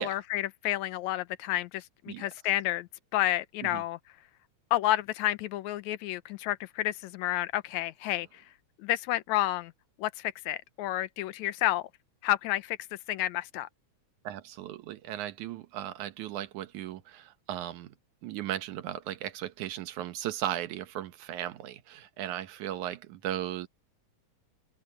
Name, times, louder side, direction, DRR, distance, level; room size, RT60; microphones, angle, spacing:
voice 1, 0.0-4.0 4.7-8.4 8.8-9.7 10.0-11.9 12.2-12.8 13.1-13.7, left 15 dB, 80° left, 2.0 m, -30 dB
voice 2, 14.2-17.9 18.2-23.7, right 12 dB, 90° right, 2.5 m, -36 dB
open air
omnidirectional pair, 3.3 m